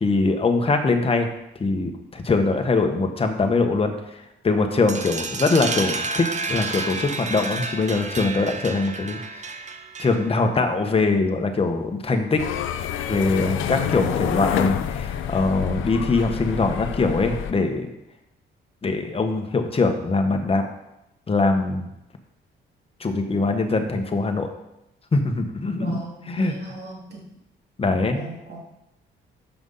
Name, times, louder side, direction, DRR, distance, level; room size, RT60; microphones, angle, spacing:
voice 1, 0.0-1.3 1.6-3.9 4.4-9.5 10.0-12.4 13.1-17.9 18.8-20.6 21.3-21.9 23.0-24.5 25.1-26.0 26.3-26.5 27.8-28.2, left 3 dB, 30° left, 5 dB, 1.2 m, -22 dB
sound 1, 4.9-10.4, right 3 dB, 35° right, 0.9 m, -30 dB
sound 2, 12.4-17.5, left 9 dB, 80° left, 0.6 m, -27 dB
voice 2, 25.8-27.3 28.1-28.7, right 2 dB, 55° right, -2 dB, 2.7 m, -38 dB
7.0 x 5.9 x 5.6 m, 0.87 s
cardioid pair, 90°, 20 cm